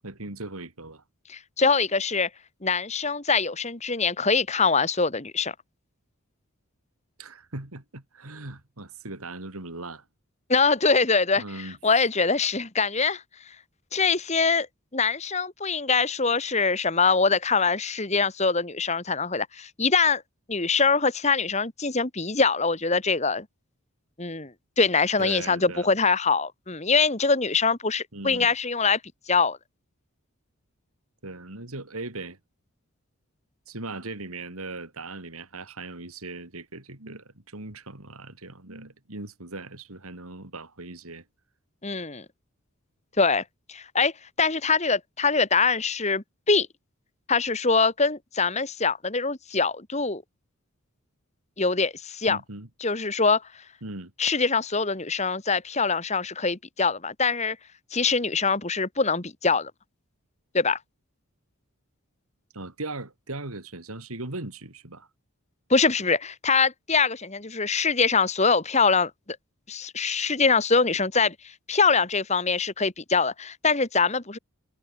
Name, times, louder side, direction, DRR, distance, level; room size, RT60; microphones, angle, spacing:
voice 1, 0.0-1.0 7.2-10.0 11.4-11.8 25.2-25.9 28.1-28.5 31.2-32.4 33.7-41.2 52.3-52.7 53.8-54.1 62.5-65.1, right 2 dB, 80° right, 3.3 m, -38 dB
voice 2, 1.3-2.3 2.6-5.6 10.5-13.2 13.9-14.7 14.9-20.2 20.5-23.5 24.2-29.0 29.3-29.6 41.8-42.3 43.2-43.4 43.7-44.1 44.4-46.7 47.3-50.2 51.6-52.4 52.8-53.4 54.2-57.6 57.9-59.7 60.5-60.8 65.7-69.1 69.7-71.4 71.7-74.4, left 4 dB, 30° left, 1.7 m, -23 dB
head